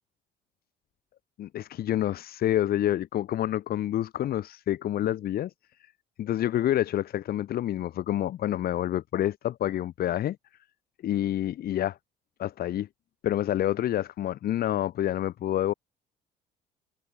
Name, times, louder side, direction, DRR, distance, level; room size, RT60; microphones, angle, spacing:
voice 1, 1.4-5.5 6.2-10.4 11.0-12.0 12.4-12.9 13.2-15.7, left 12 dB, 65° left, 5.7 m, -28 dB
cardioid pair, 110°, 17 cm